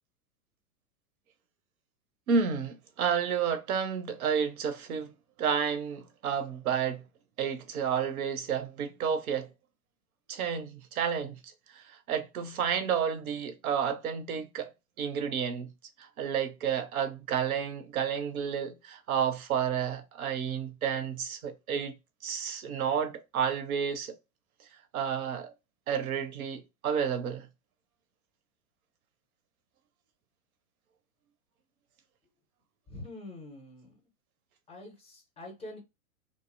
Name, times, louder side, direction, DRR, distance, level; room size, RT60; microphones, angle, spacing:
voice 1, 2.3-5.1 5.4-7.0 7.4-9.5 10.3-14.7 15.0-15.7 16.0-21.9 22.2-24.2 24.9-25.5 25.9-27.5, right 7 dB, 70° right, 0.7 m, -31 dB
voice 2, 32.9-34.0 34.7-35.8, left 2 dB, 15° left, 0.5 m, -45 dB
2.5 x 2.0 x 2.4 m
hypercardioid pair, 105°, 45 cm